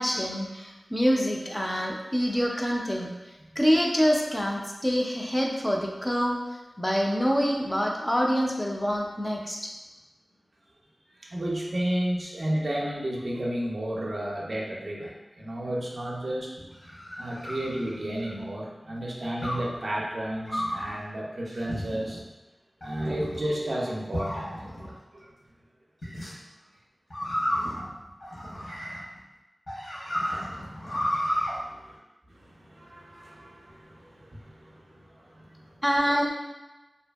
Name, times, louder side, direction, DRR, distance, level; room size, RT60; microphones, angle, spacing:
voice 1, 0.0-3.1 3.6-6.4 6.8-9.6 35.8-36.3, equal, 10° left, -1 dB, 0.3 m, -26 dB
voice 2, 11.2-16.5 17.2-22.2 22.8-25.3 26.3-26.4 27.4-27.8 30.1-32.0 32.3-35.8, right 1 dB, 60° right, -3 dB, 0.4 m, -33 dB
sound 1, 16.6-18.4 19.4-19.8 20.5-20.9 21.7-22.2 22.8-23.4 24.1-24.9 26.0-26.3 27.1-29.2 29.7-31.5, equal, 65° left, 0.9 m, -32 dB
2.6 x 2.4 x 2.3 m, 1.1 s
wide cardioid pair, 80°, 0 cm